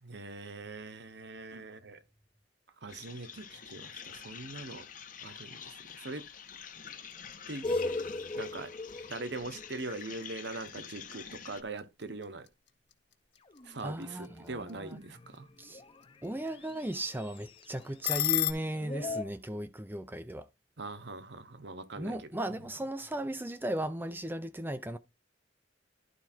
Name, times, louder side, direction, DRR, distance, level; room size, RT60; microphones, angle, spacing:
voice 1, 0.0-2.0 2.8-4.9 5.2-6.3 7.5-7.7 8.4-8.7 9.1-12.5 13.6-15.5 20.8-22.2, right 2 dB, 65° right, 1.1 m, -42 dB
sound 1, 2.9-11.6, left 7 dB, 45° left, 1.2 m, -47 dB
sound 2, 6.7-18.5, left 12 dB, 65° left, 1.5 m, -41 dB
sound 3, 7.6-10.5 13.5-19.2, left 2 dB, 30° left, 0.9 m, -40 dB
voice 2, 13.8-15.0 15.6-15.8 16.2-20.5 22.0-25.0, right 1 dB, 10° right, 0.5 m, -36 dB
11.5 x 4.7 x 4.4 m
head